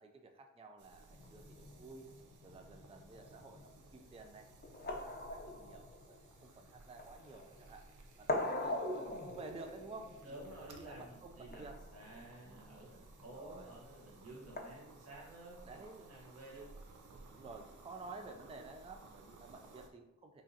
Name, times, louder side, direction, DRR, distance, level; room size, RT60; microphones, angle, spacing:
voice 1, 0.0-2.1 2.4-4.5 4.9-7.8 8.2-11.8 12.5-12.9 13.2-13.7 15.7-16.1 17.3-20.4, right 3 dB, 20° right, 5 dB, 0.3 m, -52 dB
sound 1, 0.8-19.9, right 3 dB, 75° right, 0.5 m, -59 dB
sound 2, 1.1-14.6, left 2 dB, 35° left, 0.5 m, -44 dB
voice 2, 10.2-16.7, right 1 dB, 55° right, -4 dB, 1.2 m, -53 dB
4.8 x 2.5 x 2.7 m, 0.96 s
wide cardioid pair, 95°, 30 cm